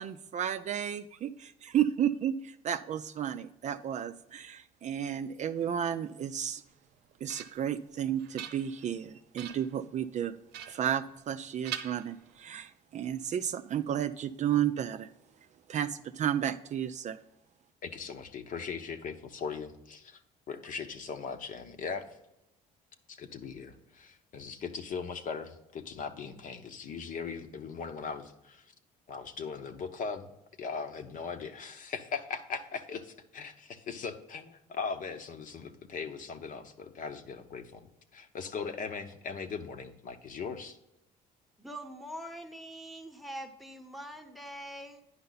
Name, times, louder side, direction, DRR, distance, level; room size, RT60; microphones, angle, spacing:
voice 1, 0.0-6.6 7.2-10.3 10.7-15.1 15.7-17.2, right 9 dB, 45° right, 10 dB, 0.4 m, -32 dB
sound 1, 6.8-7.8 8.2-9.0 9.4-9.8 10.5-11.4 11.6-12.6, right 9 dB, 85° right, 0.8 m, -44 dB
voice 2, 17.8-20.2 20.5-22.0 23.1-28.7 29.1-30.3 30.6-37.8 38.1-40.8, left 5 dB, 50° left, 7 dB, 0.9 m, -39 dB
voice 3, 41.6-45.0, equal, ahead, 7 dB, 1.0 m, -43 dB
9.6 x 5.5 x 4.0 m, 0.88 s
cardioid pair, 110°, 17 cm